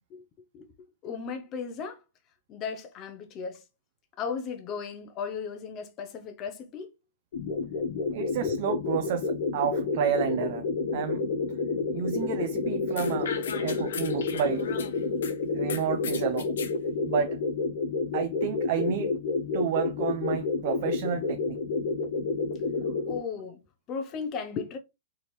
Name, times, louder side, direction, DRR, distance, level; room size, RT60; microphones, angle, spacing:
voice 1, 1.0-2.0 2.5-3.6 4.2-6.9 8.2-8.5 23.1-23.6 23.9-24.8, left 6 dB, 20° left, 0.6 m, -36 dB
sound 1, 7.3-23.2, left 3 dB, 55° left, 1.3 m, -30 dB
voice 2, 8.1-10.6 10.9-11.2 11.9-13.3 13.6-14.7 15.5-16.5 17.1-17.4 18.1-19.1 19.5-21.6, right 9 dB, 40° right, 0.4 m, -30 dB
sound 2, 13.0-15.3 15.7-16.7, left 7 dB, 75° left, 0.9 m, -38 dB
4.3 x 3.4 x 3.1 m
supercardioid pair, 175°, 0 cm